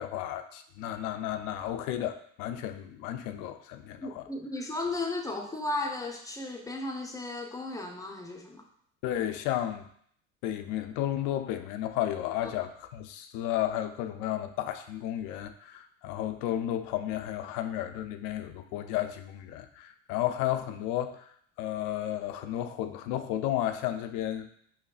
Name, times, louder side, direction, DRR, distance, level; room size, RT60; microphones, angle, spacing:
voice 1, 0.0-4.2 9.0-9.9 10.4-21.2 21.6-24.5, left 12 dB, 55° left, 8 dB, 0.5 m, -33 dB
voice 2, 4.0-8.6, left 2 dB, 10° left, 1 dB, 0.6 m, -35 dB
5.7 x 2.1 x 2.4 m, 0.64 s
hypercardioid pair, 75°, 38 cm